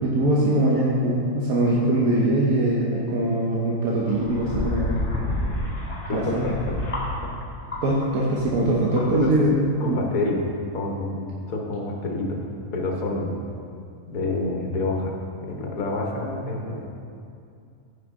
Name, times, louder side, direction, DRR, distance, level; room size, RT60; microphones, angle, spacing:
voice 1, 0.0-5.0 6.1-6.5 7.8-10.0, right 1 dB, 75° right, -5 dB, 1.4 m, -22 dB
sound 1, 4.0-8.1 8.3-9.6, left 1 dB, 40° left, 2.0 m, -30 dB
voice 2, 6.1-6.8 9.1-9.4 9.8-10.4 10.7-12.4 12.7-13.4 14.1-15.2 15.4-16.9, left 2 dB, 70° left, 1 dB, 1.6 m, -28 dB
13.5 x 5.5 x 3.6 m, 2.4 s
omnidirectional pair, 1.5 m